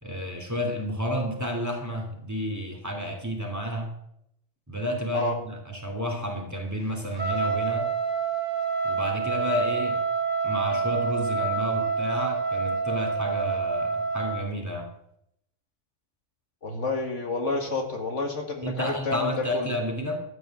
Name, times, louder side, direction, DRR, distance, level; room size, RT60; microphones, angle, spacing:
voice 1, 0.0-3.9 4.7-7.9 8.8-10.0 10.4-14.9 18.6-20.2, equal, 10° right, 2 dB, 2.7 m, -31 dB
Trumpet, 7.1-14.5, right 5 dB, 30° right, 1.9 m, -27 dB
voice 2, 16.6-19.3 19.5-19.7, left 2 dB, 60° left, 3 dB, 2.2 m, -29 dB
13.0 x 9.2 x 7.3 m, 0.75 s
omnidirectional pair, 1.4 m